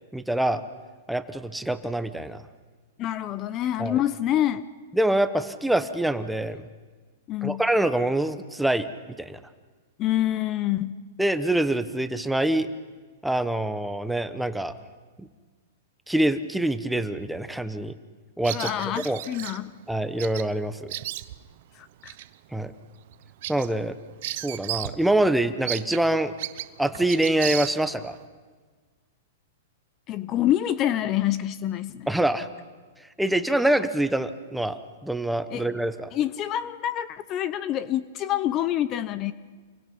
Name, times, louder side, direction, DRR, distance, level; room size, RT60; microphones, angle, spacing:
voice 1, 0.1-0.6 1.1-2.4 3.8-4.0 4.9-6.7 7.4-9.4 11.2-12.7 13.2-14.7 15.2-15.3 16.1-17.9 18.4-19.2 19.9-20.9 22.5-22.7 23.5-24.0 24.3-26.3 26.8-28.2 32.1-32.5 33.2-36.1, right 1 dB, 5° right, 10 dB, 1.0 m, -25 dB
voice 2, 3.0-4.7 7.3-7.6 10.0-11.0 18.5-19.8 21.7-22.2 30.1-32.1 35.5-35.8 36.1-39.3, left 12 dB, 30° left, 15 dB, 0.7 m, -27 dB
Bird vocalization bird call bird song, 18.4-19.6 20.2-20.5 20.7-21.5 22.0-22.3 22.7-22.8 23.1-25.0 25.3-25.4 25.7-28.1, right 15 dB, 55° right, 0.9 m, -34 dB
28.0 x 23.0 x 5.5 m, 1.4 s
hypercardioid pair, 145°, 0 cm